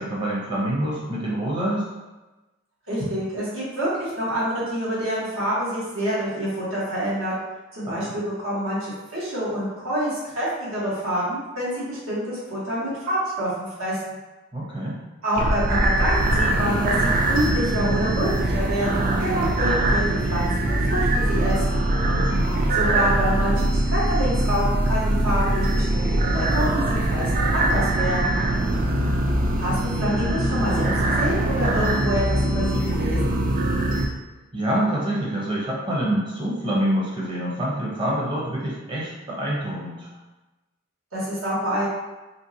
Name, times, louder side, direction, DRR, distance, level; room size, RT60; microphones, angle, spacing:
voice 1, 0.0-1.8 7.8-8.2 14.5-15.0 22.0-22.7 28.5-29.2 34.5-40.1, right 1 dB, 25° right, -5 dB, 0.7 m, -27 dB
voice 2, 2.9-7.3 7.7-14.1 15.2-21.8 22.7-28.4 29.6-33.3 41.1-41.9, equal, 80° right, -8 dB, 1.3 m, -27 dB
sound 1, 15.4-34.1, right 1 dB, 40° right, 0.3 m, -22 dB
3.0 x 2.6 x 2.7 m, 1.1 s
head